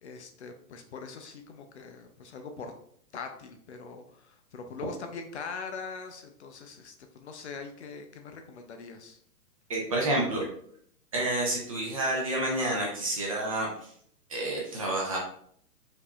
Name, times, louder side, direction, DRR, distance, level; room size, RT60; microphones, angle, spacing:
voice 1, 0.0-2.7 3.1-7.0 7.2-9.2, left 4 dB, 45° left, 5 dB, 0.4 m, -42 dB
voice 2, 9.7-10.4 11.1-13.7 14.3-15.2, right 1 dB, 25° right, -2 dB, 0.4 m, -29 dB
4.7 x 2.7 x 2.2 m, 0.65 s
hypercardioid pair, 135°, 47 cm